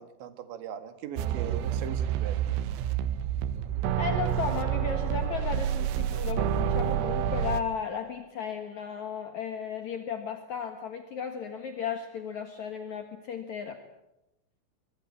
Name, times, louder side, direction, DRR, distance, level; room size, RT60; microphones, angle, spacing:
voice 1, 0.0-2.5, right 9 dB, 65° right, 9 dB, 3.9 m, -40 dB
sound 1, 1.2-7.6, right 9 dB, 85° right, 3.9 m, -28 dB
voice 2, 4.0-13.8, left 7 dB, 70° left, 6 dB, 1.7 m, -35 dB
25.5 x 23.5 x 8.7 m, 0.93 s
omnidirectional pair, 5.9 m